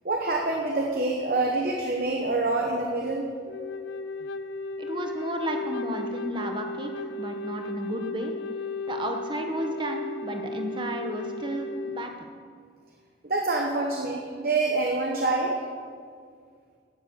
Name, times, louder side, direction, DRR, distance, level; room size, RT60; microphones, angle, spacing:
voice 1, 0.0-3.3 13.2-15.5, right 2 dB, 50° right, 0 dB, 1.1 m, -26 dB
Wind instrument woodwind instrument, 3.5-12.1, left 2 dB, 75° left, 0.4 m, -35 dB
voice 2, 4.8-8.3 8.9-12.3, right 1 dB, 25° right, 4 dB, 1.0 m, -33 dB
11.5 x 8.0 x 7.3 m, 2.1 s
head